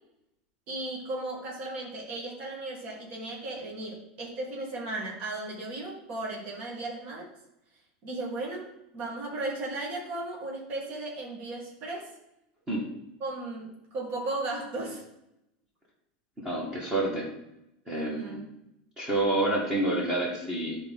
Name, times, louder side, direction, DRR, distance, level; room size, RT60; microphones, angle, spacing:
voice 1, 0.7-7.3 8.0-12.1 13.2-15.0 17.9-18.4, right 2 dB, 40° right, -2 dB, 2.2 m, -36 dB
voice 2, 16.4-17.3 17.9-18.4 19.0-20.8, right 2 dB, 15° right, -3 dB, 1.8 m, -28 dB
11.0 x 4.2 x 3.9 m, 0.85 s
supercardioid pair, 155°, 4 cm